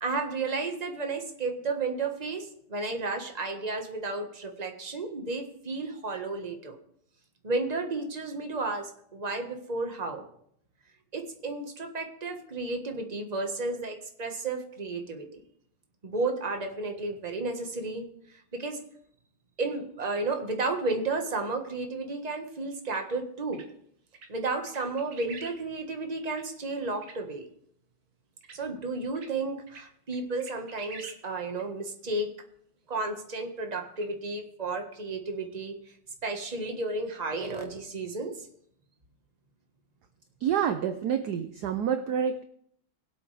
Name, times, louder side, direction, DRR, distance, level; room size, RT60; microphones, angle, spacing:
voice 1, 0.0-6.7 7.4-10.2 11.1-15.3 16.0-18.1 18.5-18.8 19.6-23.6 24.3-27.5 28.5-32.3 32.9-35.7 36.2-38.3, right 3 dB, 20° right, 4 dB, 1.3 m, -32 dB
sound 1, 22.9-23.0 23.5-23.7 24.1-24.3 24.7-25.6 25.9-26.0 26.3-26.4 27.0-27.2 28.4-28.6 29.2-29.3 29.7-29.8 30.1-31.2 31.6-31.7 34.0-34.1, right 4 dB, 50° right, 1.8 m, -45 dB
voice 2, 40.4-42.4, right 8 dB, 65° right, 9 dB, 1.0 m, -28 dB
21.5 x 8.4 x 3.4 m, 0.68 s
omnidirectional pair, 2.3 m